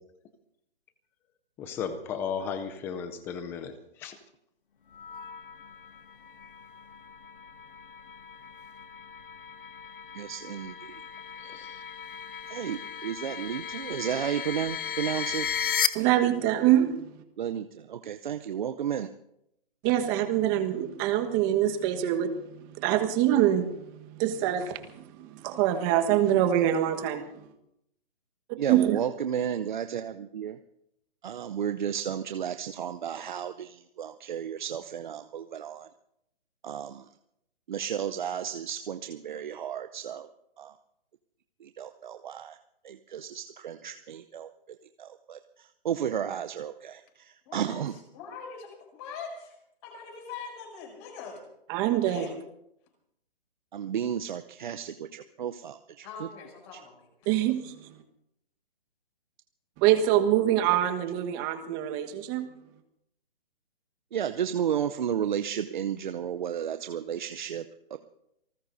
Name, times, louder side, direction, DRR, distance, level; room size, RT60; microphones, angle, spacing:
voice 1, 1.6-3.7 4.0-4.2 11.4-11.8, left 7 dB, 5° left, 10 dB, 0.5 m, -35 dB
sound 1, 4.9-15.9, left 8 dB, 60° left, 1.3 m, -36 dB
voice 2, 10.1-11.0 12.5-15.5 17.4-19.1 28.6-30.6 31.2-35.9 36.6-37.0 37.7-40.3 40.6-40.8 41.6-42.6 42.8-44.5 45.0-48.0 53.7-56.3 56.7-56.8 64.1-67.7 67.9-68.0, right 9 dB, 50° right, 9 dB, 0.8 m, -33 dB
voice 3, 15.9-16.9 19.8-27.3 28.7-29.0 51.7-52.3 57.3-57.7 59.8-62.5, right 11 dB, 20° right, 6 dB, 1.4 m, -25 dB
voice 4, 47.5-47.8 48.1-49.5 49.8-51.4 52.1-52.3 56.0-57.1, left 5 dB, 30° left, 1 dB, 7.2 m, -42 dB
27.5 x 19.5 x 2.7 m, 0.79 s
hypercardioid pair, 150°, 30 cm